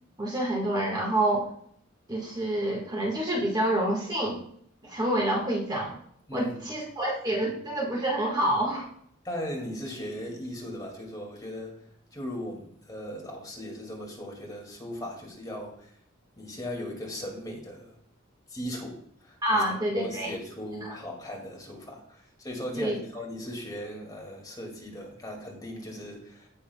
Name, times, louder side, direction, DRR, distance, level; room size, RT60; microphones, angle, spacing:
voice 1, 0.2-1.5 2.1-4.4 4.8-5.9 6.3-8.9 19.4-20.3 20.8-20.9 22.7-23.0, right 1 dB, 20° right, -2 dB, 1.6 m, -27 dB
voice 2, 9.2-11.8 12.1-15.9 16.4-18.0 18.5-26.5, equal, 20° left, -1 dB, 2.2 m, -38 dB
15.5 x 6.4 x 2.3 m, 0.64 s
head